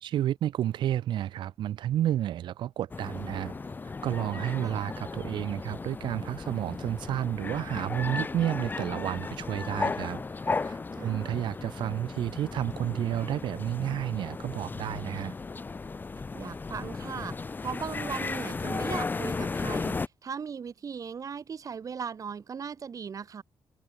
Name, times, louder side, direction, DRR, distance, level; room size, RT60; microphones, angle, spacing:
voice 1, 0.0-3.5 4.0-10.2 10.6-15.3, right 12 dB, 90° right, 2.2 m, -31 dB
sound 1, 2.9-20.1, left 4 dB, 25° left, 0.7 m, -35 dB
voice 2, 4.5-4.9 10.9-11.4 16.3-20.0 20.2-23.4, right 6 dB, 45° right, 2.7 m, -38 dB
cardioid pair, 110°, 8 cm